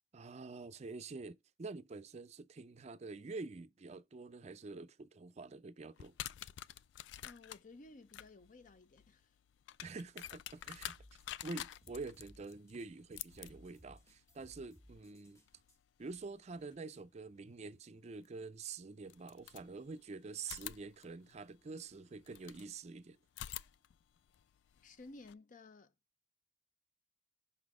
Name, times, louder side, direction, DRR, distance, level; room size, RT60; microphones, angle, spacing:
voice 1, 0.1-6.1 9.8-10.9 11.4-15.4 16.0-23.2, right 4 dB, 40° right, 0.4 m, -47 dB
sound 1, 6.0-16.8 18.2-18.3 19.0-20.0 20.4-22.7 23.3-25.3, left 12 dB, 85° left, 0.3 m, -50 dB
voice 2, 7.2-9.3 24.8-25.9, left 2 dB, 45° left, 0.6 m, -55 dB
sound 2, 10.8-15.8, equal, 15° left, 1.5 m, -63 dB
5.5 x 4.0 x 4.8 m
head